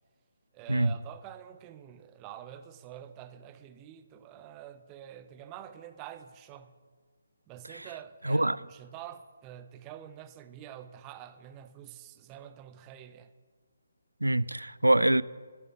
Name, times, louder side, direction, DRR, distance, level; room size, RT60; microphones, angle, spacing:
voice 1, 0.5-6.8 7.5-13.3, right 10 dB, 20° right, 0.5 m, -47 dB
voice 2, 8.2-8.6 14.2-15.2, right 1 dB, 85° right, 0.4 m, -25 dB
12.0 x 7.2 x 8.3 m
figure-of-eight pair, 145°, 0 cm